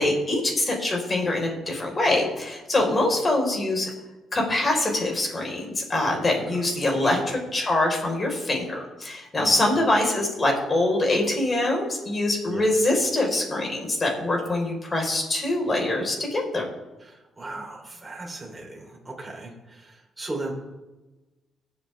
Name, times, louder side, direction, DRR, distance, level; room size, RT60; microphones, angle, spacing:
voice 1, 0.0-3.9 4.3-16.6, left 2 dB, 30° left, 0 dB, 4.3 m, -24 dB
voice 2, 2.7-3.1 6.3-7.2 9.4-9.7 12.5-12.7 17.0-20.5, right 2 dB, 15° right, -2 dB, 3.4 m, -37 dB
19.5 x 7.8 x 3.4 m, 1.1 s
cardioid pair, 90°, 0 cm